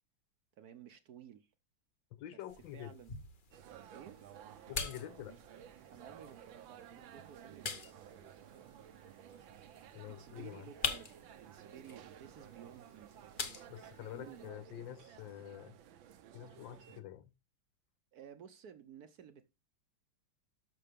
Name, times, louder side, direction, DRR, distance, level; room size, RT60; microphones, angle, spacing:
voice 1, 0.6-1.5 2.3-2.4 2.7-3.1 3.9-4.2 5.9-8.8 10.1-13.1 14.1-14.7 18.1-19.5, right 9 dB, 65° right, 1.1 m, -55 dB
voice 2, 2.1-3.0 4.7-5.4 9.9-10.7 13.7-15.8 16.3-17.3, left 12 dB, 80° left, 1.4 m, -47 dB
sound 1, 2.5-14.5, left 5 dB, 45° left, 0.7 m, -46 dB
sound 2, 3.5-17.0, right 10 dB, 85° right, 1.6 m, -55 dB
12.5 x 6.2 x 3.5 m
omnidirectional pair, 2.1 m